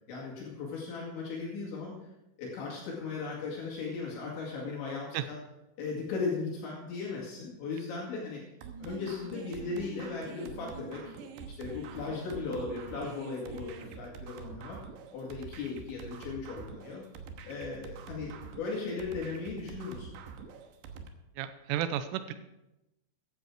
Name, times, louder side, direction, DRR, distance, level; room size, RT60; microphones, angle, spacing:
voice 1, 0.1-1.9 2.4-5.4 5.8-8.4 8.8-11.1 11.5-14.8 15.1-17.0 17.4-20.1, left 4 dB, 70° left, -4 dB, 4.4 m, -37 dB
sound 1, 8.6-21.1, right 5 dB, 75° right, 3.0 m, -45 dB
voice 2, 21.4-22.3, right 11 dB, 90° right, 10 dB, 3.2 m, -32 dB
15.5 x 10.5 x 4.7 m, 0.95 s
omnidirectional pair, 5.6 m